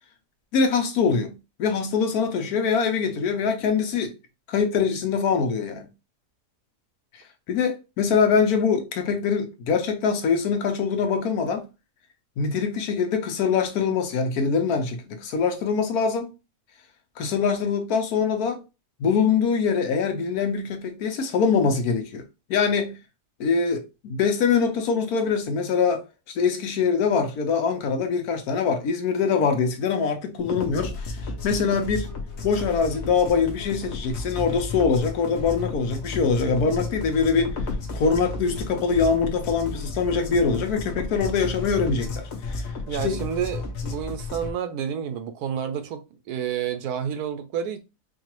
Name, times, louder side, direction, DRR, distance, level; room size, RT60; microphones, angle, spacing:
voice 1, 0.5-4.1 4.5-5.9 7.5-11.7 12.4-16.3 17.2-18.6 19.0-22.2 22.5-22.9 23.4-26.0 26.3-31.2 31.4-32.1 32.4-37.6 37.9-42.7 43.0-43.2, left 5 dB, 70° left, 1.2 m, -23 dB
sound 1, 30.4-44.5, left 3 dB, 55° left, 0.9 m, -33 dB
voice 2, 42.9-47.8, right 8 dB, 75° right, 1.1 m, -30 dB
4.7 x 2.3 x 3.0 m
omnidirectional pair, 1.7 m